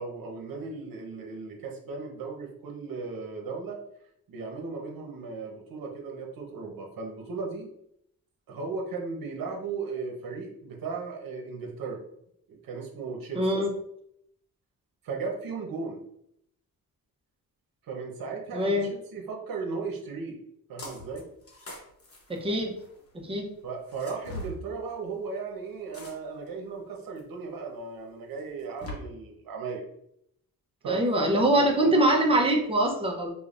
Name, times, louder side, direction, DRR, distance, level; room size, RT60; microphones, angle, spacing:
voice 1, 0.0-3.8 4.3-7.7 8.5-12.0 12.5-13.5 15.0-16.0 17.9-20.4 20.7-21.3 23.6-29.8 30.8-31.9, right 4 dB, 70° right, 1 dB, 1.0 m, -36 dB
voice 2, 13.3-13.7 18.5-18.9 22.3-22.8 23.2-23.5 30.9-33.3, right 1 dB, 15° right, 0 dB, 0.7 m, -23 dB
sound 1, 20.8-21.2 21.5-23.0 23.9-24.6 25.9-26.5 27.2-27.3 28.4-28.9, left 2 dB, 40° left, 1.0 m, -41 dB
5.0 x 2.3 x 2.5 m, 0.74 s
cardioid pair, 115°, 36 cm